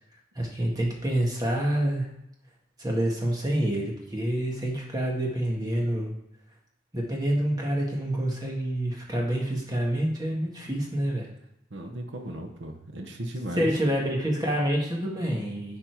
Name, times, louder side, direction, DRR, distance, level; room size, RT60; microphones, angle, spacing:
voice 1, 0.4-2.1 2.8-6.1 6.9-11.3 13.6-15.8, right 1 dB, 20° right, -2 dB, 1.8 m, -27 dB
voice 2, 11.7-13.7, right 1 dB, 65° right, 4 dB, 1.1 m, -36 dB
11.0 x 4.3 x 4.7 m, 0.84 s
head